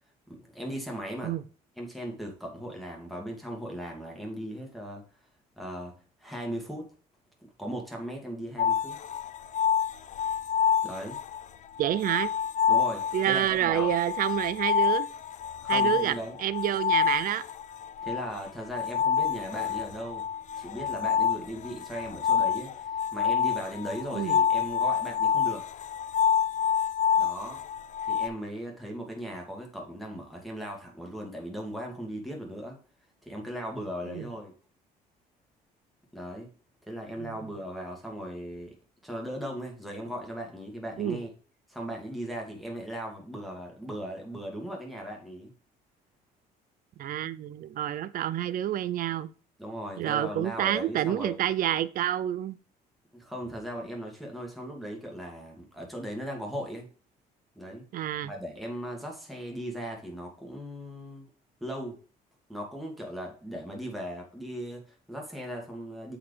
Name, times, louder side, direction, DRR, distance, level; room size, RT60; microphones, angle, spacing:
voice 1, 0.3-1.3 1.8-5.0 5.6-5.9 6.2-6.9 7.6-9.0 10.8-11.2 12.7-13.9 15.6-16.4 18.0-20.2 20.6-25.6 27.2-27.6 28.1-32.8 33.2-34.5 36.1-36.5 36.9-38.7 39.0-41.3 41.7-45.5 49.6-51.4 53.1-56.9 57.6-57.8 58.2-61.3 61.6-62.0 62.5-66.2, equal, ahead, 2.5 m, -38 dB
sound 1, 8.6-11.4 11.8-28.3, left 7 dB, 45° left, 0.6 m, -28 dB
voice 2, 11.8-12.3 13.1-15.1 15.7-17.4 24.1-24.4 34.1-34.3 37.2-37.4 41.0-41.2 47.0-49.3 50.0-52.6 57.9-58.3, right 11 dB, 55° right, 0.6 m, -28 dB
8.3 x 5.0 x 3.4 m
cardioid pair, 110°, 17 cm